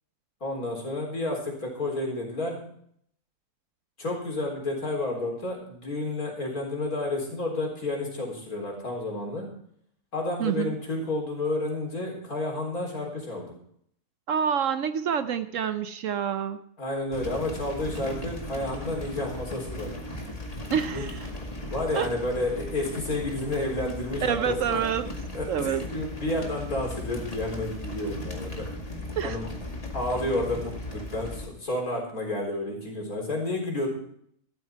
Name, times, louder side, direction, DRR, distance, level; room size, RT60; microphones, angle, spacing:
voice 1, 0.4-2.6 4.0-9.5 10.1-13.5 16.8-19.9 20.9-21.1 21.7-24.8 25.3-28.7 29.2-29.5 29.9-33.9, left 2 dB, 70° left, 0 dB, 4.4 m, -30 dB
voice 2, 10.4-10.7 14.3-16.6 20.7-21.3 21.9-22.1 24.2-25.1 25.5-25.8 29.2-29.4, right 8 dB, 65° right, 11 dB, 0.9 m, -27 dB
sound 1, 17.1-31.5, left 1 dB, 25° left, 2.1 m, -37 dB
13.5 x 12.5 x 4.5 m, 0.66 s
omnidirectional pair, 1.6 m